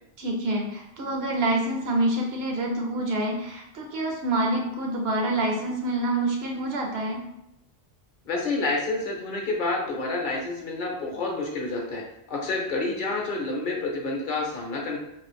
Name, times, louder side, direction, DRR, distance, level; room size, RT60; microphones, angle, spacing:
voice 1, 0.2-7.2, right 1 dB, 75° right, 1 dB, 0.9 m, -27 dB
voice 2, 8.3-12.0 12.3-15.0, left 3 dB, 55° left, -1 dB, 0.7 m, -28 dB
2.5 x 2.4 x 3.3 m, 0.81 s
omnidirectional pair, 1.1 m